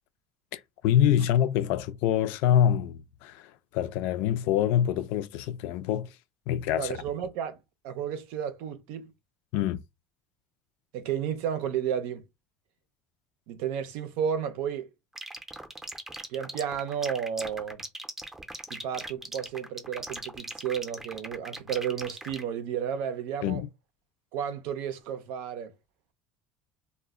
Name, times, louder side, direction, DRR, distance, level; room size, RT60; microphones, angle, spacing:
voice 1, 0.5-6.1 6.5-6.9 9.5-9.8 23.4-23.7, left 10 dB, 70° left, 0.4 m, -25 dB
voice 2, 6.8-7.6 7.8-9.1 10.9-12.2 13.5-14.9 16.3-17.8 18.7-23.6 24.3-25.7, right 8 dB, 75° right, 0.5 m, -32 dB
sound 1, 15.2-22.4, right 1 dB, 10° right, 0.6 m, -39 dB
2.1 x 2.1 x 3.5 m
cardioid pair, 135°, 3 cm